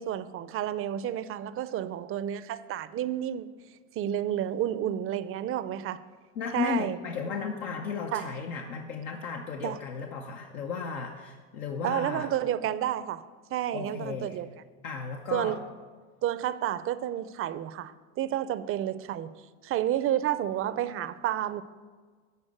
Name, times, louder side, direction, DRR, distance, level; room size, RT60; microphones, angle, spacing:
voice 1, 0.0-3.5 4.0-6.0 6.5-7.0 8.1-8.3 9.6-9.8 11.8-13.2 13.5-14.5 15.3-15.6 16.2-19.3 19.6-21.6, right 11 dB, 35° right, 0.5 m, -30 dB
voice 2, 6.4-12.3 13.7-14.4 14.8-15.6, left 6 dB, 80° left, 0.9 m, -34 dB
11.5 x 4.2 x 7.6 m
hypercardioid pair, 95°, 39 cm